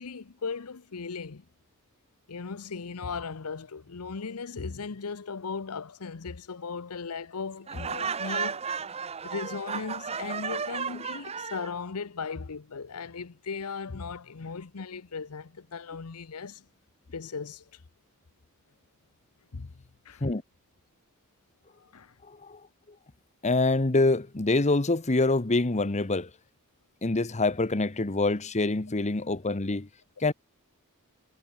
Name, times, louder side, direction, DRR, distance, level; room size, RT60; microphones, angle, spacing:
voice 1, 0.0-1.4 2.3-8.7 9.2-16.6 17.1-17.8 19.5-19.7 20.1-20.2 21.8-22.1, left 5 dB, 85° left, 0.8 m, -37 dB
Laughter, 7.7-11.7, right 6 dB, 30° right, 0.7 m, -33 dB
voice 2, 22.3-22.6 23.4-26.3 27.0-29.9 30.2-30.3, left 2 dB, 30° left, 1.0 m, -25 dB
head